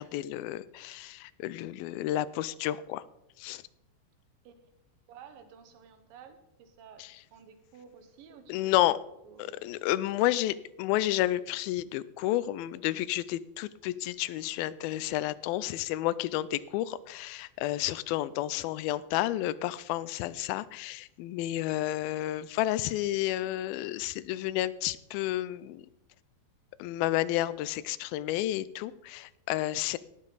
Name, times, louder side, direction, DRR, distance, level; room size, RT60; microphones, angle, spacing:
voice 1, 0.0-3.0 3.4-3.6 7.0-7.1 8.5-9.0 9.4-25.9 26.8-30.0, left 14 dB, 85° left, 17 dB, 2.4 m, -31 dB
voice 2, 5.1-7.0 7.3-10.4, right 7 dB, 75° right, 8 dB, 2.8 m, -53 dB
18.5 x 7.3 x 4.0 m, 0.87 s
omnidirectional pair, 4.2 m